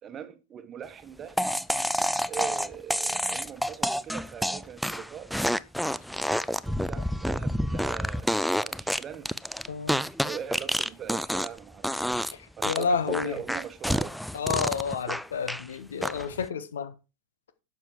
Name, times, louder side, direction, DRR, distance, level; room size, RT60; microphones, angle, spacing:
voice 1, 0.0-1.4 2.3-5.3 6.6-9.3 10.2-14.2 14.6-14.7, right 9 dB, 25° right, 1.2 m, -41 dB
sound 1, 1.4-11.6 11.8-12.3 12.6-15.6 16.0-16.5, equal, ahead, 0.4 m, -28 dB
voice 2, 9.7-10.0 12.3-13.4 14.3-16.9, left 6 dB, 65° left, 1.3 m, -30 dB
11.5 x 7.3 x 4.6 m
figure-of-eight pair, 90°, 0 cm